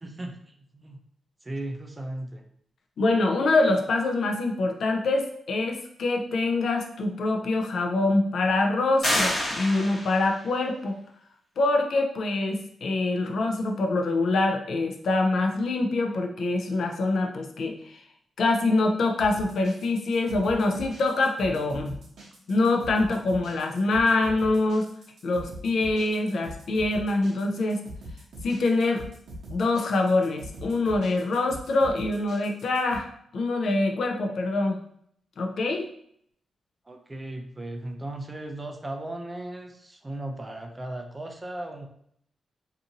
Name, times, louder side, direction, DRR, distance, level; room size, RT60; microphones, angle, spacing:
voice 1, 0.0-1.0 1.4-2.4 36.9-41.9, right 1 dB, 20° right, 4 dB, 0.3 m, -36 dB
voice 2, 3.0-11.0 11.6-18.0 18.4-22.0 22.5-24.9 25.2-27.8 28.4-29.0 29.5-34.8 35.4-35.9, left 2 dB, 65° left, 3 dB, 0.4 m, -25 dB
sound 1, 9.0-10.4, left 1 dB, 30° left, 1.2 m, -27 dB
sound 2, 19.2-33.0, equal, 75° right, 0.7 m, -42 dB
2.5 x 2.5 x 2.7 m, 0.67 s
wide cardioid pair, 155°, 0 cm